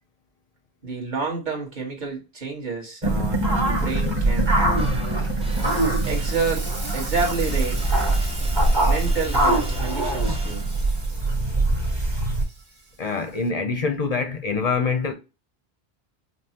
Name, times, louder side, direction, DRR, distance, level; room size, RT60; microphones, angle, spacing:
voice 1, 0.8-4.5 5.5-6.6 6.9-8.0 8.8-10.7, right 4 dB, 45° right, 1.4 m, -29 dB
sound 1, 3.0-12.4, right 2 dB, 25° right, 1.1 m, -23 dB
Frying (food), 3.8-13.5, right 2 dB, 65° right, 1.6 m, -41 dB
sound 2, 4.8-11.1, equal, 10° right, 0.4 m, -33 dB
voice 2, 13.0-15.1, left 4 dB, 45° left, 0.5 m, -25 dB
5.2 x 2.0 x 2.8 m
omnidirectional pair, 1.1 m